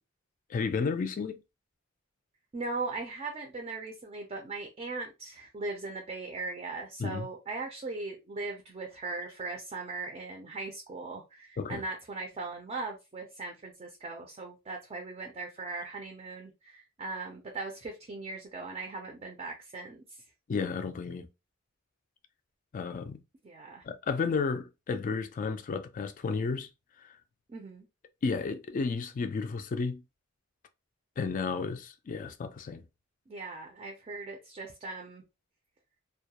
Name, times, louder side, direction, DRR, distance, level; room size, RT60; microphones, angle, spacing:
voice 1, 0.5-1.4 7.0-7.3 11.6-11.8 20.5-21.3 22.7-23.2 23.8-26.7 27.0-27.2 28.2-30.0 31.2-32.8, left 4 dB, 40° left, 0.3 m, -32 dB
voice 2, 2.5-20.0 23.4-23.8 27.5-27.9 33.3-35.2, right 3 dB, 30° right, 0.4 m, -39 dB
2.2 x 2.1 x 2.8 m
head